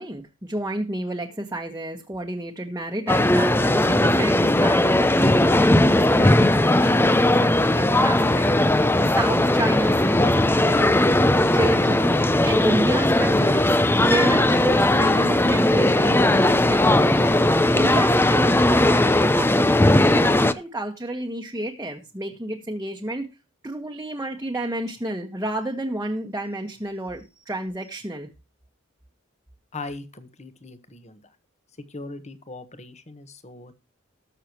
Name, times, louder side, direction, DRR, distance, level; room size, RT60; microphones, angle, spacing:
voice 1, 0.0-8.5 9.0-11.3 11.5-13.7 14.0-17.3 17.7-23.3 23.6-28.3, right 1 dB, 15° right, 0 dB, 1.3 m, -30 dB
sound 1, 3.1-20.5, left 1 dB, 10° left, 0.6 m, -18 dB
voice 2, 29.7-31.3 31.9-33.7, left 3 dB, 35° left, 11 dB, 1.4 m, -39 dB
19.5 x 6.7 x 3.0 m, 0.27 s
head